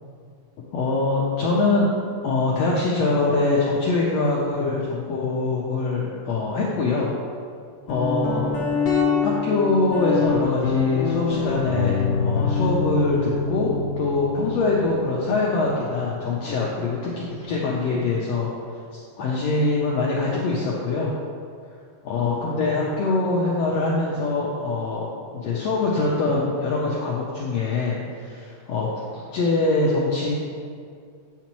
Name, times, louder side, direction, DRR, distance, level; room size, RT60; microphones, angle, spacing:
voice 1, 0.6-1.9 2.2-7.1 7.9-8.5 9.2-18.5 19.2-21.1 22.0-25.1 25.3-30.3, left 3 dB, 80° left, -4 dB, 1.6 m, -23 dB
Guitar, 7.9-17.4, left 5 dB, 65° left, 2.0 m, -26 dB
8.2 x 7.1 x 3.0 m, 2.2 s
omnidirectional pair, 3.8 m